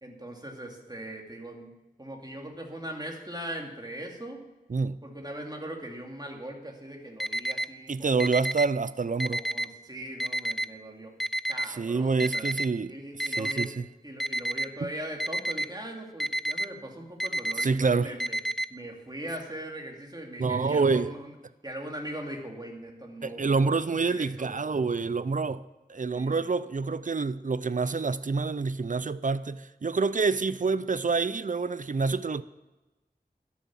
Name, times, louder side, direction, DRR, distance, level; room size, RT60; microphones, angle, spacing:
voice 1, 0.0-1.7 2.0-4.4 5.0-8.5 9.1-11.1 11.5-12.5 12.9-13.7 14.0-18.4 18.7-21.3 21.6-23.8 24.0-24.6 26.1-26.4, right 1 dB, 25° right, 2.5 m, -40 dB
Alarm, 7.2-7.7 8.2-8.7 9.2-9.7 10.2-10.7 11.2-11.7 12.2-12.7 13.2-13.7 14.2-14.7 15.2-15.7 16.2-16.7 17.2-17.7 18.2-18.7, right 1 dB, ahead, 0.4 m, -29 dB
voice 2, 7.9-9.4 11.7-12.9 13.2-13.7 17.6-18.1 20.4-21.1 23.2-25.6 25.9-32.4, right 4 dB, 55° right, 0.5 m, -27 dB
12.5 x 7.2 x 7.4 m
wide cardioid pair, 40°, 16 cm